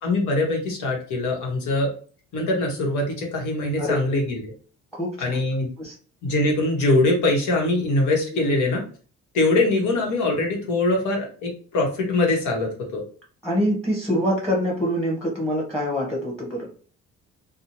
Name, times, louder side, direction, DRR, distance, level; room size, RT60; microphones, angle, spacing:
voice 1, 0.0-1.9 2.3-4.5 5.2-5.7 6.2-8.8 9.3-13.0, left 2 dB, 80° left, 0 dB, 1.0 m, -22 dB
voice 2, 4.9-5.4 5.8-6.0 8.3-8.6 13.4-16.7, equal, ahead, -3 dB, 0.8 m, -25 dB
2.5 x 2.0 x 2.8 m, 0.41 s
cardioid pair, 90°, 30 cm